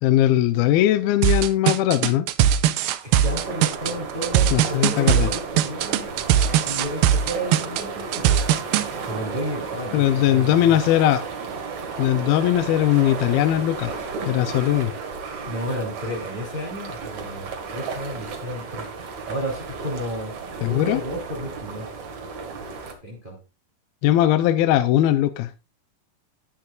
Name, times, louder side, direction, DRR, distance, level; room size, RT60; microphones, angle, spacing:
voice 1, 0.0-2.3 4.5-5.3 9.9-11.2 12.0-13.9 14.3-14.9 20.6-21.0 24.0-25.5, left 13 dB, 80° left, 2.5 m, -20 dB
sound 1, 1.2-8.9, right 10 dB, 80° right, 2.4 m, -20 dB
voice 2, 3.0-6.1 6.7-8.4 9.0-10.8 15.4-18.9 19.3-20.4 20.6-21.9 23.0-23.4, equal, 15° right, 3.2 m, -32 dB
sound 2, 3.2-22.9, right 5 dB, 55° right, 2.9 m, -34 dB
19.5 x 6.7 x 2.4 m
omnidirectional pair, 4.3 m